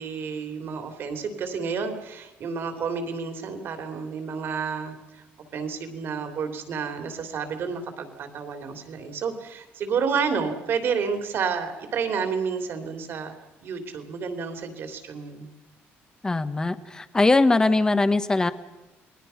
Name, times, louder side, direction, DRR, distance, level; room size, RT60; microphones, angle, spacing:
voice 1, 0.0-5.2 5.5-13.3 13.6-15.5, right 6 dB, 55° right, 7 dB, 3.1 m, -30 dB
voice 2, 16.2-18.5, left 2 dB, 15° left, 12 dB, 1.2 m, -21 dB
29.0 x 20.0 x 5.8 m, 1.0 s
cardioid pair, 130°, 5 cm